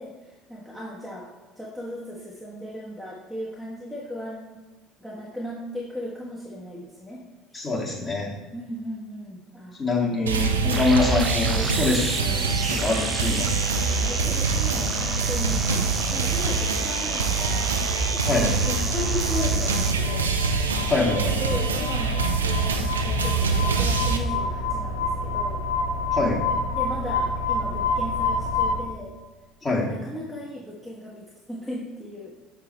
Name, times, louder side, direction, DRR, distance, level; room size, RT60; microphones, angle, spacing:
voice 1, 0.0-4.6 5.0-7.2 7.5-7.6 8.5-10.5 14.0-17.7 18.2-20.4 21.3-25.6 26.7-29.2 29.6-32.4, equal, 5° left, -5 dB, 1.2 m, -36 dB
voice 2, 7.5-8.3 9.8-13.5 18.2-18.5 20.9-21.6 26.1-26.4 29.6-29.9, left 2 dB, 25° left, -4 dB, 2.0 m, -25 dB
sound 1, 10.3-24.2, right 4 dB, 80° right, 0.5 m, -25 dB
sound 2, 10.7-19.9, right 3 dB, 20° right, 0.5 m, -30 dB
sound 3, 18.3-28.8, left 2 dB, 85° left, 0.7 m, -28 dB
6.9 x 5.8 x 3.0 m, 1.2 s
figure-of-eight pair, 65°, 0 cm